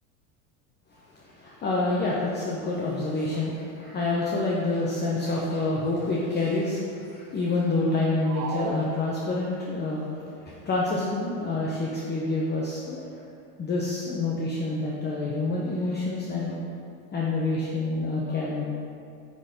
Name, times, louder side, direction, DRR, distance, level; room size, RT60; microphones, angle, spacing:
voice 1, 0.9-13.1 13.6-16.6 17.1-18.7, left 2 dB, 25° left, -4 dB, 0.9 m, -28 dB
sound 1, 8.2-9.7, right 4 dB, 65° right, 1.3 m, -35 dB
8.9 x 4.0 x 5.1 m, 2.5 s
supercardioid pair, 120°, 44 cm